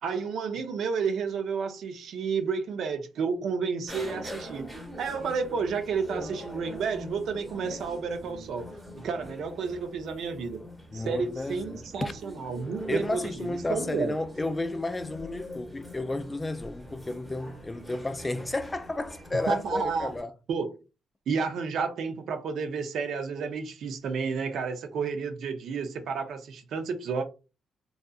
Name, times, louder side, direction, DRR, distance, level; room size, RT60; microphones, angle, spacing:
voice 1, 0.0-8.7 9.0-10.6 10.9-14.2 19.5-20.1 20.5-20.8 21.3-27.2, right 5 dB, 70° right, 0.5 m, -31 dB
sound 1, 3.9-20.2, equal, 5° right, 0.9 m, -43 dB
voice 2, 10.9-12.1 12.9-20.3, left 2 dB, 20° left, 0.3 m, -32 dB
2.7 x 2.3 x 2.3 m
cardioid pair, 90°, 0 cm